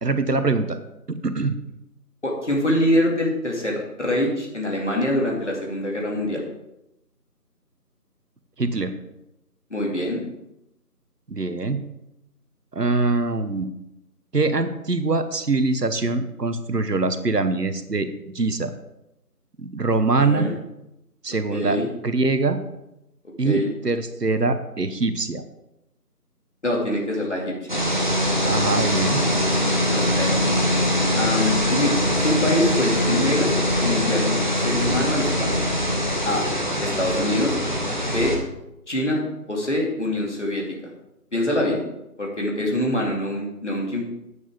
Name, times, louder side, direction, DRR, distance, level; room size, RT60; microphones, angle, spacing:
voice 1, 0.0-0.8 1.1-1.6 8.6-8.9 11.3-11.8 12.7-13.7 14.3-18.7 19.6-20.5 21.2-21.8 22.0-22.6 23.4-25.4 28.4-29.2, right 3 dB, 80° right, 10 dB, 1.2 m, -23 dB
voice 2, 2.2-6.4 9.7-10.3 20.2-20.5 21.5-21.9 23.4-23.7 26.6-27.7 29.9-30.3 31.1-31.9 32.2-33.5 33.8-35.5 36.2-36.4 36.8-37.5 38.1-38.4 38.9-39.2 39.5-40.9 41.3-41.8 42.2-44.1, left 1 dB, 45° left, -1 dB, 2.5 m, -24 dB
sound 1, 27.7-38.4, equal, 30° left, 1.3 m, -22 dB
11.0 x 8.7 x 3.6 m, 0.88 s
figure-of-eight pair, 170°, 47 cm